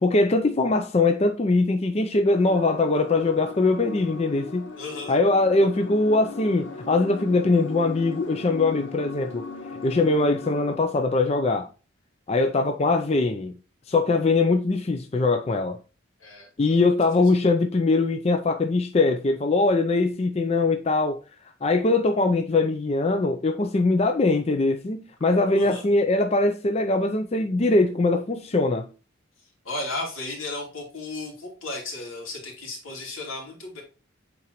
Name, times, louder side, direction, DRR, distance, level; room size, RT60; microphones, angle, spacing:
voice 1, 0.0-4.7 5.1-9.5 9.8-11.7 12.3-13.5 13.9-15.8 16.6-21.2 21.6-28.9, left 3 dB, 30° left, 0.4 m, -22 dB
sound 1, 2.3-10.8, left 4 dB, 60° left, 1.0 m, -38 dB
voice 2, 4.7-5.2 16.2-16.8 25.5-25.8 29.6-33.8, left 2 dB, 85° left, 2.8 m, -35 dB
8.7 x 3.9 x 3.0 m
head